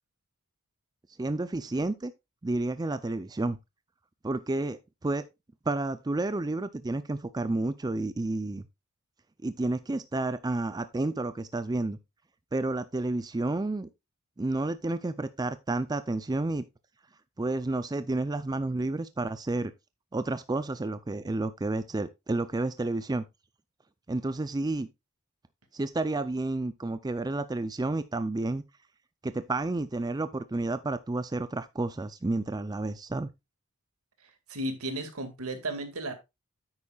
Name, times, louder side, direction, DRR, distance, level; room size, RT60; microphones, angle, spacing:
voice 1, 1.2-2.1 2.4-3.6 4.2-5.2 5.7-8.6 9.4-12.0 12.5-13.9 14.4-16.6 17.4-19.7 20.1-23.2 24.1-24.9 25.7-28.6 29.2-33.3, right 2 dB, 20° right, 0.4 m, -30 dB
voice 2, 34.2-36.1, right 1 dB, 80° right, 1.9 m, -34 dB
9.7 x 8.4 x 2.3 m
head